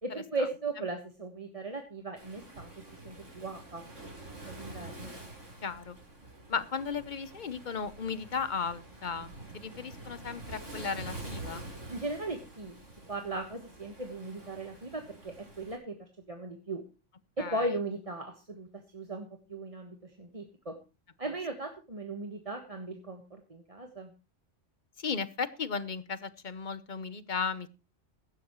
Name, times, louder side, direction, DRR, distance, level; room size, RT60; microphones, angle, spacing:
voice 1, 0.0-4.1 4.5-5.1 11.9-12.7 13.1-16.8 17.4-20.8 21.2-24.1, right 2 dB, 30° right, 4 dB, 1.5 m, -38 dB
Waves surf, 2.2-15.8, right 2 dB, 85° right, 4.9 m, -47 dB
voice 2, 5.6-6.0 6.5-11.6 17.4-17.7 25.0-27.7, left 5 dB, 45° left, 15 dB, 1.0 m, -35 dB
16.5 x 12.0 x 3.1 m, 0.30 s
omnidirectional pair, 1.2 m